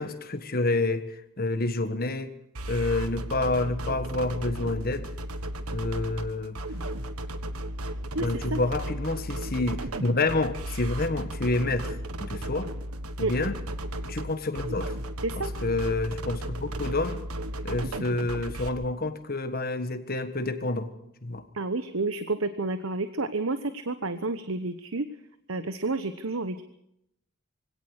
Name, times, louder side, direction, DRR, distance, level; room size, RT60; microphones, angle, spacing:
voice 1, 0.0-2.3 2.7-5.1 5.7-6.6 8.2-12.7 13.2-13.6 14.0-15.0 15.6-17.2 17.6-20.9 21.2-21.4, left 2 dB, 45° left, 10 dB, 1.5 m, -28 dB
sound 1, 2.5-18.7, right 1 dB, 85° right, 1.6 m, -35 dB
voice 2, 8.1-8.6 13.2-13.3 15.2-15.5 21.5-25.1 25.5-26.6, right 3 dB, 65° right, 11 dB, 1.1 m, -30 dB
23.5 x 17.5 x 6.5 m, 0.78 s
head